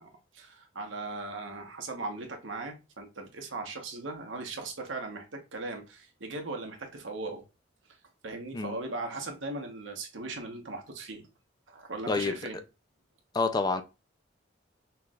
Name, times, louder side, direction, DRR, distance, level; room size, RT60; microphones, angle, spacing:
voice 1, 0.0-7.4 8.2-11.2 11.7-12.6, right 3 dB, 90° right, 1.2 m, -38 dB
voice 2, 13.3-13.8, left 3 dB, 20° left, 0.4 m, -28 dB
5.8 x 3.2 x 2.4 m
head